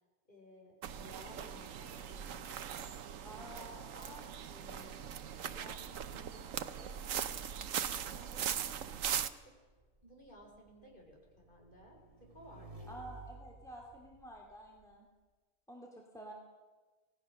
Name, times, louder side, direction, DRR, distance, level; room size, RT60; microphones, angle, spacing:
voice 1, 0.3-3.1 3.3-5.0 5.2-7.5 7.8-8.8 9.1-9.5 10.0-12.9, left 1 dB, 35° left, 0 dB, 5.2 m, -57 dB
sound 1, 0.8-9.3, right 8 dB, 65° right, 1.2 m, -40 dB
voice 2, 3.2-4.2 12.9-15.1 15.7-16.3, right 1 dB, ahead, 0 dB, 2.5 m, -50 dB
Motorcycle / Engine, 9.3-14.9, right 2 dB, 25° right, 2.3 m, -56 dB
26.5 x 18.0 x 6.4 m, 1.3 s
omnidirectional pair, 1.5 m